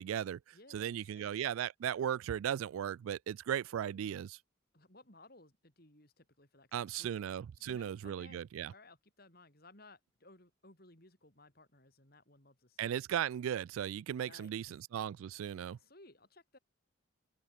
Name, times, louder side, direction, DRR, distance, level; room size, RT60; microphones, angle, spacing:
voice 1, 0.0-0.4 0.7-4.4 6.7-8.7 12.8-15.8, right 9 dB, 80° right, 0.3 m, -37 dB
voice 2, 0.5-1.3 3.8-4.3 4.7-6.7 6.9-7.2 7.6-13.0 14.2-14.6 15.8-16.6, left 2 dB, 45° left, 5.3 m, -60 dB
open air
head